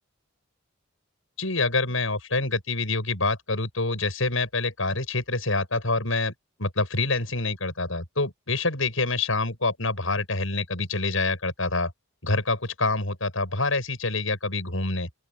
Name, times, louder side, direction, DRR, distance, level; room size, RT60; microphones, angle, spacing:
voice 1, 1.4-6.3 6.6-11.9 12.2-15.1, left 3 dB, 75° left, 7.7 m, -26 dB
open air
head